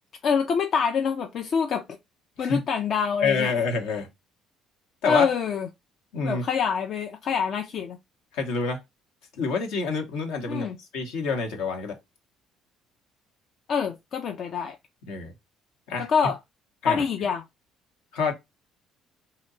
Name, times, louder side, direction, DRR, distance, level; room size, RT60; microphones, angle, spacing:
voice 1, 0.2-1.8 2.4-3.5 5.1-5.7 6.2-8.0 10.5-10.8 13.7-14.8 16.0-16.4 16.8-17.4, left 6 dB, 55° left, 0.4 m, -25 dB
voice 2, 3.2-4.1 5.0-5.3 6.1-6.4 8.3-8.8 9.3-12.0 15.1-15.3 15.9-16.1 16.8-17.0 18.1-18.3, left 4 dB, 75° left, 0.8 m, -27 dB
2.8 x 2.1 x 3.8 m
hypercardioid pair, 60°, 0 cm